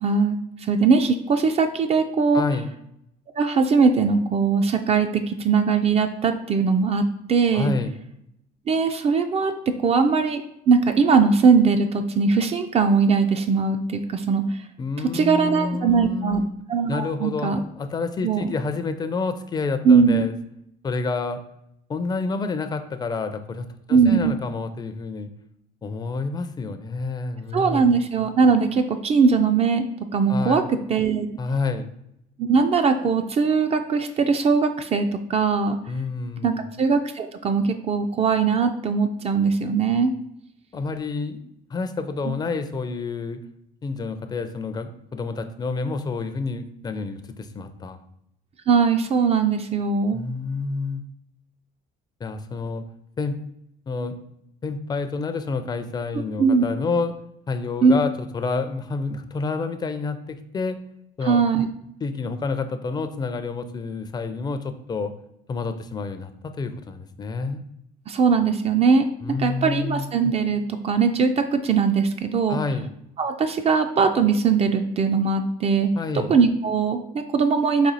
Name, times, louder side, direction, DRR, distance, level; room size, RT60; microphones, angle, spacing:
voice 1, 0.0-2.4 3.4-7.0 7.3-7.7 8.7-10.4 10.7-14.6 15.1-16.4 16.7-17.6 18.2-18.5 19.8-20.3 23.9-24.4 27.5-29.9 30.1-31.3 32.4-35.8 36.4-40.1 42.3-42.4 48.7-50.2 56.4-56.6 57.8-58.0 61.3-61.7 68.1-69.1 69.4-72.6 73.2-75.9 76.3-77.9, right 5 dB, 40° right, 7 dB, 0.3 m, -20 dB
voice 2, 2.3-2.7 7.5-7.9 14.8-16.5 16.9-20.3 20.8-21.4 21.9-25.3 25.8-27.9 30.3-30.7 31.4-31.9 35.9-36.7 40.7-41.4 41.7-43.4 43.8-48.0 50.1-51.0 52.2-52.8 53.2-53.4 53.9-54.2 54.6-57.1 57.5-60.8 61.2-61.4 62.0-65.1 65.5-67.6 69.2-70.1 72.5-72.9 76.0-76.3, left 4 dB, 25° left, 8 dB, 0.4 m, -29 dB
4.1 x 2.7 x 4.0 m, 0.77 s
cardioid pair, 110°, 17 cm